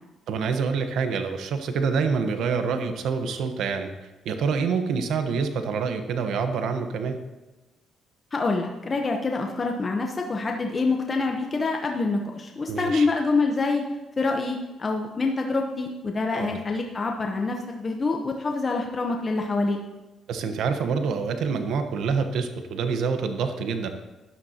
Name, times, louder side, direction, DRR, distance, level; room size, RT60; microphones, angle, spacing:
voice 1, 0.3-3.9 4.2-7.2 12.7-13.1 16.3-16.5 20.3-23.9, right 5 dB, 80° right, 7 dB, 1.1 m, -26 dB
voice 2, 8.3-13.8 14.2-19.8, left 3 dB, 35° left, 2 dB, 0.9 m, -26 dB
13.0 x 10.5 x 2.9 m, 1.1 s
cardioid pair, 90°, 0 cm